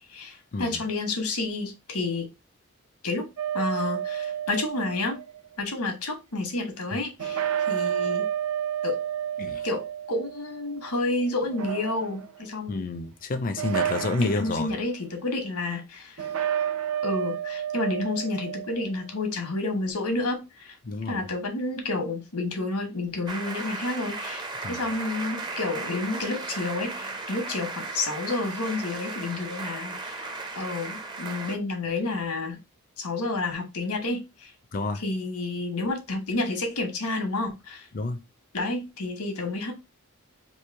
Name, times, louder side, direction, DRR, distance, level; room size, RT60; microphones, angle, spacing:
voice 1, 0.1-2.3 3.0-3.3 3.5-5.2 5.6-8.3 8.8-9.0 9.6-12.9 14.2-16.3 17.0-20.8 21.0-30.3 30.5-32.6 33.0-34.5 34.9-37.9 38.5-39.7, left 2 dB, 85° left, 1.2 m, -30 dB
sound 1, 3.4-5.4 7.2-10.9 11.4-12.4 13.6-14.7 16.2-18.9, right 10 dB, 80° right, 0.7 m, -30 dB
voice 2, 12.7-14.7 20.8-21.3 24.6-24.9 34.7-35.0 37.9-38.2, left 3 dB, 40° left, 0.4 m, -29 dB
sound 2, 23.3-31.6, right 3 dB, 20° right, 0.5 m, -36 dB
3.1 x 2.7 x 4.5 m
head